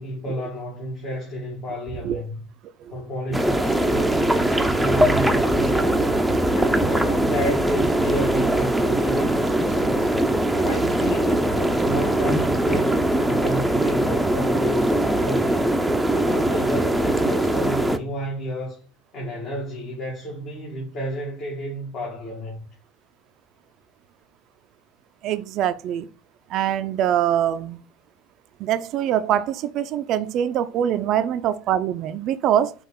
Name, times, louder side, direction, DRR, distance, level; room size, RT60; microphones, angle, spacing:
voice 1, 0.0-2.4 2.9-6.1 6.5-10.1 10.5-13.0 13.2-15.8 16.1-18.8 19.1-22.6, equal, 50° left, 1.8 m, -31 dB
sound 1, 3.3-18.0, right 1 dB, 5° right, 0.6 m, -21 dB
voice 2, 25.2-26.1 26.5-27.8 28.6-32.7, right 10 dB, 55° right, 0.4 m, -23 dB
5.5 x 2.4 x 3.6 m
supercardioid pair, 95°, 0 cm